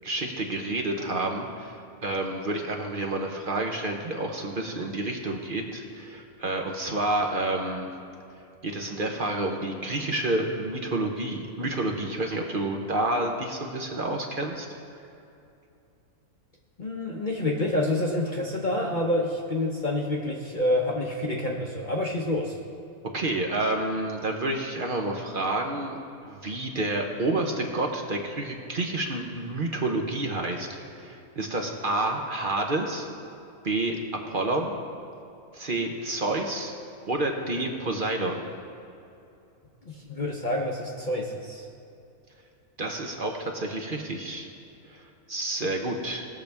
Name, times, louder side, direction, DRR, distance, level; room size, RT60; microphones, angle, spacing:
voice 1, 0.0-7.9 8.6-14.7 23.1-26.0 26.3-30.7 31.0-33.1 33.6-34.0 34.3-34.8 35.5-36.7 37.1-38.4 42.8-44.5 44.9-46.3, right 2 dB, 45° right, 2 dB, 0.9 m, -29 dB
voice 2, 16.8-22.5 39.9-41.7, left 1 dB, 40° left, -1 dB, 0.9 m, -28 dB
19.0 x 6.7 x 3.5 m, 2.7 s
omnidirectional pair, 1.5 m